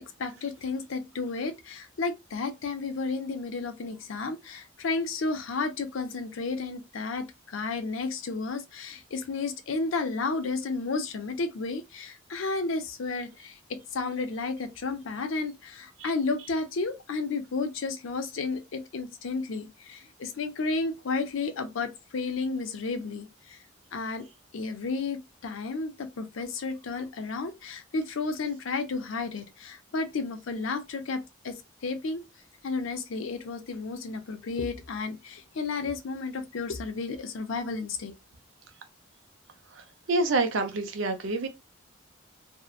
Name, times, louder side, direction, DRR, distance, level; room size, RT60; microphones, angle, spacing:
voice 1, 0.2-23.6 23.9-24.2 24.5-32.2 32.6-38.1, left 3 dB, 80° left, 0.5 m, -32 dB
voice 2, 40.1-41.5, right 2 dB, 75° right, 0.6 m, -27 dB
2.6 x 2.1 x 2.3 m
head